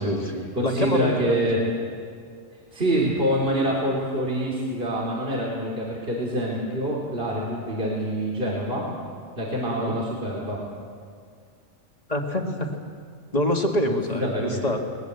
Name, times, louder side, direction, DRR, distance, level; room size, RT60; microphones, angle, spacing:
voice 1, 0.0-1.5 9.7-9.9 12.1-12.7 13.3-14.8, left 1 dB, 30° left, 2 dB, 2.2 m, -26 dB
voice 2, 0.5-1.6 2.7-8.9 9.4-10.6 13.9-14.6, equal, 45° right, -4 dB, 3.6 m, -26 dB
20.5 x 20.5 x 8.2 m, 2.2 s
omnidirectional pair, 1.4 m